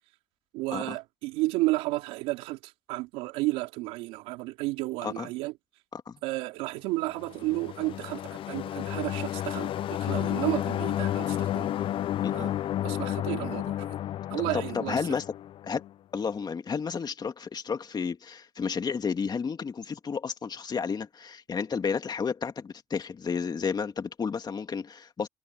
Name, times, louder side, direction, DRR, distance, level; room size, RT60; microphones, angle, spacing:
voice 1, 0.5-5.5 6.2-11.7 12.3-12.5 12.8-14.0 14.3-15.2, right 21 dB, 90° right, 3.9 m, -32 dB
sound 1, 7.2-15.9, left 12 dB, 60° left, 0.4 m, -31 dB
voice 2, 12.2-12.5 14.5-15.2 15.6-15.8 16.1-25.3, left 6 dB, 40° left, 2.3 m, -32 dB
supercardioid pair, 70°, 10 cm